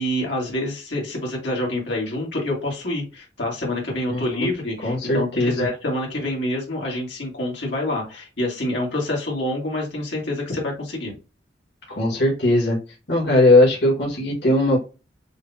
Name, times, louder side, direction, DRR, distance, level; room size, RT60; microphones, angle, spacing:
voice 1, 0.0-11.2, left 1 dB, 85° left, -2 dB, 1.8 m, -27 dB
voice 2, 4.1-4.5 4.8-5.7 11.9-12.8 13.1-14.8, left 1 dB, 70° left, -3 dB, 1.7 m, -19 dB
6.3 x 2.2 x 2.8 m, 0.31 s
head